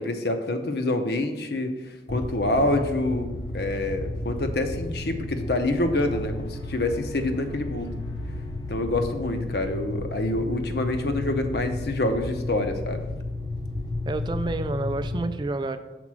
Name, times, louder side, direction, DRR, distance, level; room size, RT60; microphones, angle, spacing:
voice 1, 0.0-7.9 8.7-13.0, left 2 dB, 65° left, 7 dB, 0.7 m, -27 dB
sound 1, 2.1-2.2 2.7-9.6, equal, 90° left, 1.3 m, -48 dB
sound 2, 2.1-15.3, left 2 dB, 25° left, 0.6 m, -33 dB
voice 2, 14.1-15.8, right 2 dB, 25° right, 10 dB, 0.3 m, -29 dB
6.0 x 4.1 x 6.0 m, 1.2 s
head